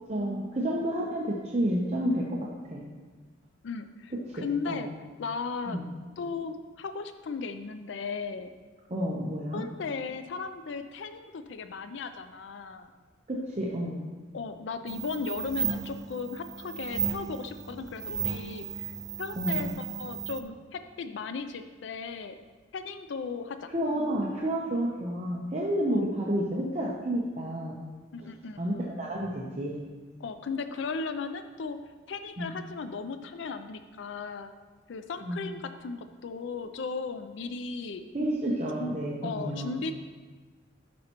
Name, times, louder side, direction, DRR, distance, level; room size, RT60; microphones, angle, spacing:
voice 1, 0.1-2.4 2.7-2.8 4.3-4.8 5.7-5.8 8.9-9.6 13.3-14.0 19.4-19.6 23.7-27.8 28.2-28.3 28.6-29.8 32.4-32.5 35.2-35.4 38.1-39.8, right 1 dB, 35° right, -4 dB, 0.8 m, -30 dB
voice 2, 3.6-4.9 5.2-5.8 6.2-8.5 9.5-12.9 14.3-22.4 22.7-23.7 25.9-26.1 28.1-28.6 30.2-31.8 32.1-34.5 34.9-38.1 38.8-38.9 39.2-39.9, left 4 dB, 65° left, 9 dB, 0.4 m, -36 dB
sound 1, 14.9-20.4, right 7 dB, 15° right, 0.3 m, -34 dB
11.5 x 5.4 x 3.0 m, 1.3 s
head